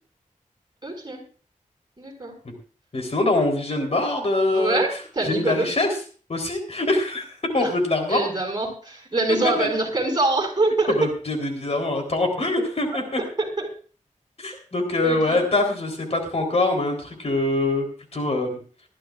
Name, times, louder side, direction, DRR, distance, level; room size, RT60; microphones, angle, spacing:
voice 1, 0.8-1.2 2.0-2.3 4.5-5.7 7.6-7.7 8.1-11.1 13.4-13.7 15.0-15.5, right 2 dB, 30° right, 2 dB, 5.8 m, -24 dB
voice 2, 2.9-4.8 5.2-5.9 6.3-7.2 7.5-8.2 9.6-9.7 10.9-13.2 14.4-17.9 18.1-18.6, left 2 dB, 50° left, 3 dB, 3.7 m, -23 dB
20.5 x 14.5 x 2.5 m, 0.40 s
wide cardioid pair, 115°, 14 cm